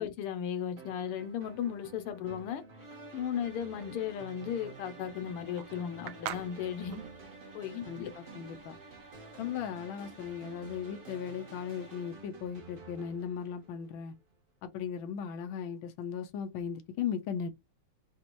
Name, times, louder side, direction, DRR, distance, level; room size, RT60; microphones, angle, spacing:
voice 1, 0.0-2.6 3.1-7.0 7.5-8.1, left 9 dB, 85° left, 1.7 m, -36 dB
sound 1, 0.8-14.3, right 4 dB, 65° right, 0.5 m, -52 dB
sound 2, 2.7-12.4, right 1 dB, 20° right, 0.6 m, -53 dB
sound 3, 4.5-9.5, right 12 dB, 80° right, 0.9 m, -45 dB
voice 2, 7.9-8.8 9.4-14.1 14.6-17.5, left 8 dB, 70° left, 1.5 m, -37 dB
5.5 x 3.0 x 2.6 m
omnidirectional pair, 2.4 m